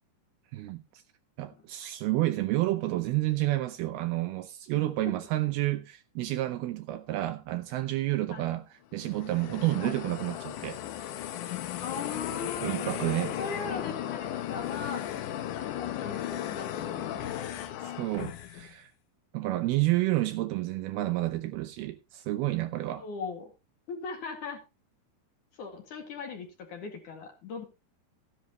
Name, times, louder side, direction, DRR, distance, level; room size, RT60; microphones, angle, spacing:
voice 1, 0.5-1.0 1.4-8.6 8.9-10.8 12.6-13.4 17.8-18.9 19.3-23.1, right 17 dB, 75° right, 2.4 m, -30 dB
sound 1, 9.0-18.7, left 11 dB, 75° left, 1.8 m, -36 dB
voice 2, 11.8-15.1 15.5-17.4 22.9-23.5 23.9-24.6 25.6-27.7, left 4 dB, 55° left, 3.1 m, -39 dB
14.0 x 10.5 x 3.0 m
omnidirectional pair, 4.9 m